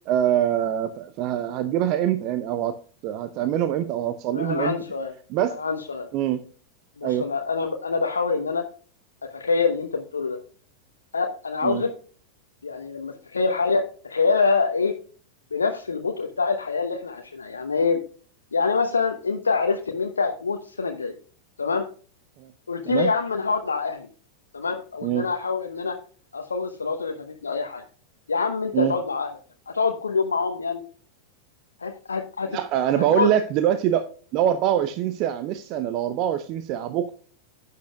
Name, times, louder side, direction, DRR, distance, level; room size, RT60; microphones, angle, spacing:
voice 1, 0.1-2.8 3.0-4.7 5.3-5.5 6.1-6.4 7.0-7.3 11.6-11.8 22.4-22.5 22.9-23.1 25.0-25.3 28.7-28.9 32.5-37.1, right 11 dB, 40° right, 11 dB, 0.7 m, -24 dB
voice 2, 4.3-5.1 5.5-6.1 7.0-8.6 9.3-10.4 11.1-11.9 12.6-14.9 15.5-18.0 18.5-21.1 21.6-21.9 22.7-24.1 24.5-25.9 26.3-27.8 28.3-29.3 29.7-30.8 31.8-32.6 33.1-33.3, left 4 dB, 75° left, 4 dB, 0.9 m, -25 dB
11.5 x 9.5 x 2.3 m, 0.41 s
figure-of-eight pair, 90°, 0 cm